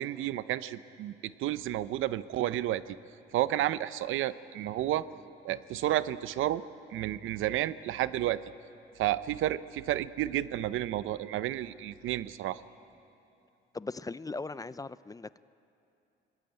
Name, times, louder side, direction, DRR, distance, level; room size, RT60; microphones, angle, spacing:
voice 1, 0.0-3.0 3.3-5.0 5.4-6.6 6.9-8.4 9.0-12.6, right 13 dB, 85° right, 15 dB, 0.7 m, -31 dB
voice 2, 13.7-15.4, left 3 dB, 15° left, 17 dB, 0.5 m, -39 dB
25.5 x 20.0 x 8.9 m, 2.8 s
cardioid pair, 90°, 20 cm